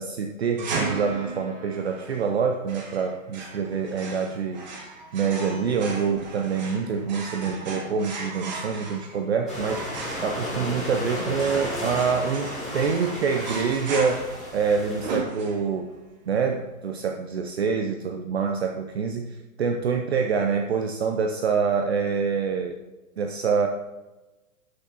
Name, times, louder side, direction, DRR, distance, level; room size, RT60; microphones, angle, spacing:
voice 1, 0.0-4.6 5.1-9.8 10.2-14.3 14.5-15.9 16.3-22.8 23.2-23.7, right 5 dB, 45° right, 4 dB, 0.8 m, -26 dB
sound 1, 0.6-15.9, right 3 dB, 30° right, 1.4 m, -36 dB
sound 2, 9.5-15.2, left 1 dB, ahead, 3.1 m, -33 dB
12.0 x 6.6 x 4.2 m, 1.1 s
hypercardioid pair, 170°, 43 cm